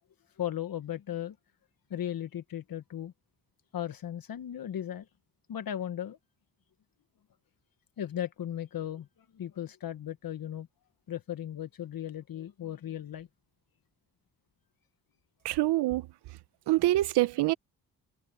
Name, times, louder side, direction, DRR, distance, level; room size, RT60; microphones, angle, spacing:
voice 1, 0.4-1.4 1.9-3.1 3.7-5.1 5.5-6.2 8.0-9.1 9.3-10.7 11.1-13.3, left 10 dB, 60° left, 1.5 m, -36 dB
voice 2, 15.4-16.0 16.7-17.5, right 17 dB, 80° right, 0.8 m, -25 dB
supercardioid pair, 55°, 40 cm